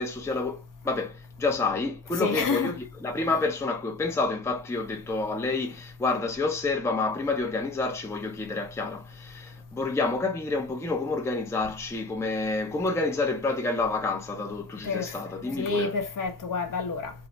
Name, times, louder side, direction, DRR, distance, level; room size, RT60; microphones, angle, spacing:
voice 1, 0.0-15.9, left 3 dB, 5° left, 0.5 m, -29 dB
voice 2, 2.2-2.7 14.8-15.2 15.6-17.1, left 4 dB, 50° left, 0.7 m, -28 dB
3.2 x 2.0 x 2.6 m
wide cardioid pair, 125°, 41 cm